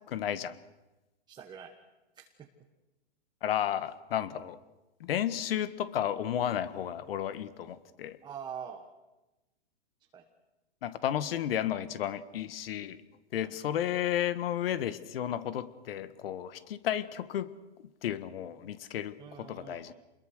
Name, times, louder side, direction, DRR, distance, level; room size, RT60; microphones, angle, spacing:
voice 1, 0.1-0.6 3.4-4.6 5.0-8.2 10.8-13.0 13.3-17.5 18.0-19.9, left 10 dB, 60° left, 14 dB, 1.6 m, -33 dB
voice 2, 1.3-1.7 2.1-2.5 8.2-8.9 10.1-10.2 13.4-13.5 19.2-19.9, right 8 dB, 15° right, 3 dB, 1.3 m, -44 dB
28.5 x 21.5 x 6.5 m, 1.0 s
hypercardioid pair, 145°, 32 cm